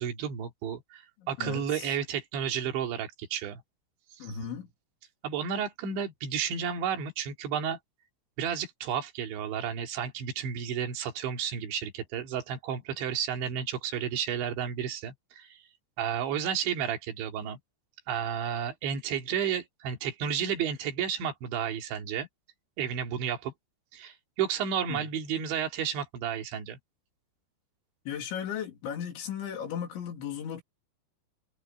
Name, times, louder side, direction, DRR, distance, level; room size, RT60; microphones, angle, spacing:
voice 1, 0.0-1.0 1.3-3.6 5.2-7.8 8.4-15.6 16.0-17.6 18.1-22.3 22.8-23.5 23.9-26.8, right 8 dB, 70° right, 5.0 m, -32 dB
voice 2, 1.2-1.9 4.2-4.7 24.9-25.1 28.1-30.6, left 8 dB, 75° left, 5.0 m, -36 dB
omnidirectional pair, 5.5 m